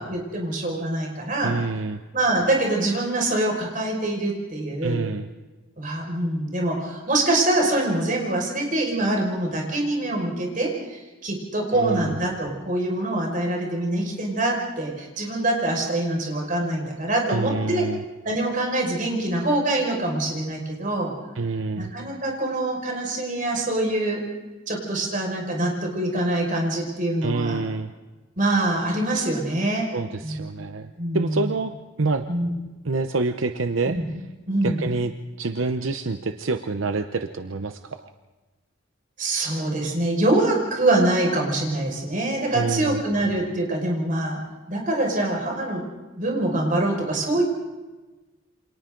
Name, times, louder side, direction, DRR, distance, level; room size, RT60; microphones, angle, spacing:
voice 1, 0.0-1.6 2.1-5.0 5.8-17.8 18.2-21.1 21.8-24.2 24.7-27.6 28.4-29.9 30.2-30.4 31.0-31.4 32.3-32.5 33.9-34.0 34.5-34.9 39.2-44.4 44.7-45.8 46.2-47.4, right 1 dB, 40° right, 0 dB, 5.6 m, -24 dB
voice 2, 1.4-2.0 4.8-5.3 11.7-12.2 17.3-18.0 21.3-21.9 27.2-27.9 29.9-32.3 32.8-34.0 34.6-38.1 42.5-43.0, right 3 dB, 80° right, 8 dB, 0.8 m, -27 dB
29.0 x 26.5 x 3.9 m, 1.2 s
head